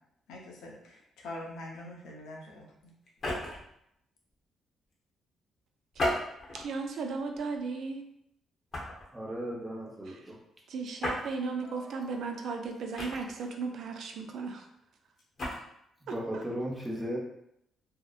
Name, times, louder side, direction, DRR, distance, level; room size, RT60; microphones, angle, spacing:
voice 1, 0.3-2.9, left 1 dB, 90° left, -2 dB, 0.6 m, -44 dB
sound 1, 3.1-3.7 5.9-6.7 7.3-7.6 8.7-9.1 11.0-11.3 13.0-13.5 15.2-15.6, left 1 dB, 50° left, 0.8 m, -33 dB
voice 2, 6.5-8.0 10.1-10.2 10.7-14.6 16.1-16.4, right 4 dB, 70° right, 3 dB, 0.3 m, -36 dB
voice 3, 9.1-10.4 11.6-11.9 16.1-17.2, equal, 15° right, -2 dB, 0.7 m, -36 dB
2.7 x 2.0 x 2.3 m, 0.77 s
cardioid pair, 90°, 0 cm